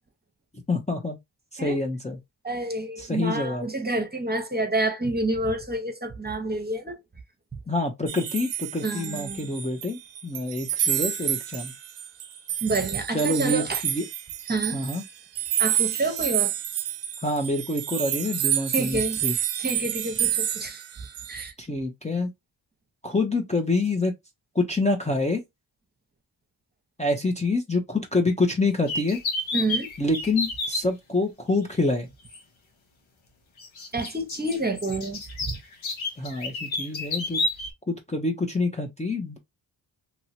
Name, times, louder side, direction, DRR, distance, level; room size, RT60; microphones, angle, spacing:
voice 1, 0.7-1.2 1.5-2.2 3.0-3.7 7.7-11.7 13.1-14.0 14.7-15.0 17.2-19.3 21.6-22.3 23.0-24.1 24.5-25.4 27.0-29.2 30.0-32.1 36.2-37.4 37.9-39.4, left 2 dB, 15° left, 0.7 m, -26 dB
voice 2, 2.4-7.0 8.8-9.5 12.6-13.8 14.5-14.8 15.6-16.5 18.7-19.2 19.6-20.8 21.3-21.5 29.5-29.9 33.9-35.6, right 2 dB, 20° right, 1.0 m, -28 dB
sound 1, 8.1-9.9 10.2-21.5, right 11 dB, 70° right, 0.6 m, -29 dB
sound 2, 28.9-30.8 32.3-32.4 33.6-37.7, left 2 dB, 85° left, 1.1 m, -30 dB
2.9 x 2.9 x 2.7 m
cardioid pair, 60°, 46 cm